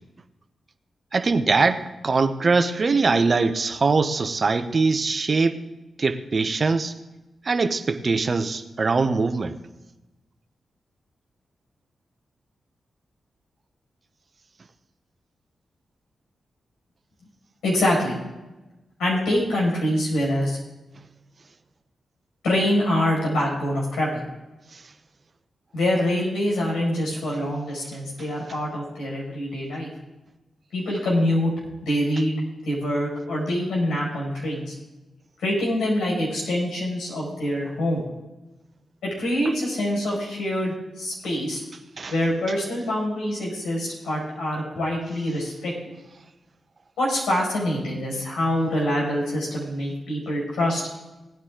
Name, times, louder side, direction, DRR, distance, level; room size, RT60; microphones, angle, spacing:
voice 1, 1.1-5.6 6.0-6.9 7.4-9.6 24.7-24.8 42.0-42.1, right 4 dB, 50° right, 0.9 m, -22 dB
voice 2, 17.6-18.2 19.0-20.6 22.4-24.2 25.7-29.9 30.7-31.5 31.8-32.4 32.6-34.7 35.4-38.0 39.0-41.6 42.1-45.9 47.0-50.8, left 1 dB, 85° left, 5.1 m, -25 dB
18.0 x 9.6 x 3.7 m
supercardioid pair, 40°, 0 cm